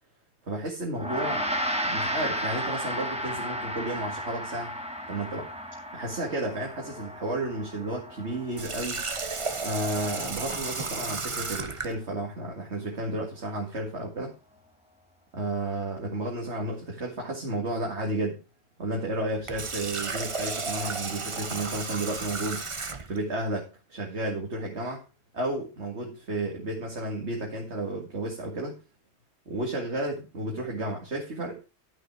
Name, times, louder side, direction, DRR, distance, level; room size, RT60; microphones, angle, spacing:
voice 1, 0.4-1.5 1.8-4.7 5.1-5.5 5.9-9.0 9.6-14.3 15.3-18.4 18.8-22.6 23.1-25.0 25.3-28.7 29.5-31.6, right 1 dB, 75° right, 0 dB, 2.4 m, -32 dB
Gong, 0.9-10.5, equal, 5° right, 1.5 m, -34 dB
Water tap faucet, 8.5-11.9 19.3-23.2, right 4 dB, 30° right, 0.9 m, -33 dB
12.5 x 5.9 x 4.7 m, 0.31 s
omnidirectional pair, 1.1 m